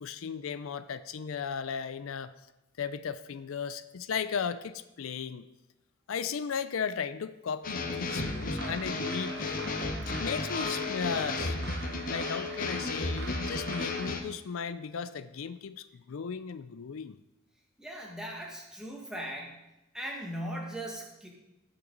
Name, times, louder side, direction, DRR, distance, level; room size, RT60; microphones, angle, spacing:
voice 1, 0.0-2.3 2.8-5.4 6.1-9.3 10.1-11.6 12.1-17.2, left 6 dB, 75° left, 13 dB, 0.4 m, -36 dB
sound 1, 7.6-14.2, left 3 dB, 40° left, 0.9 m, -33 dB
sound 2, 8.1-14.2, right 4 dB, 55° right, 1.1 m, -44 dB
voice 2, 17.8-19.6 19.9-21.3, right 1 dB, 5° right, -1 dB, 1.7 m, -39 dB
17.0 x 6.0 x 3.9 m, 0.95 s
head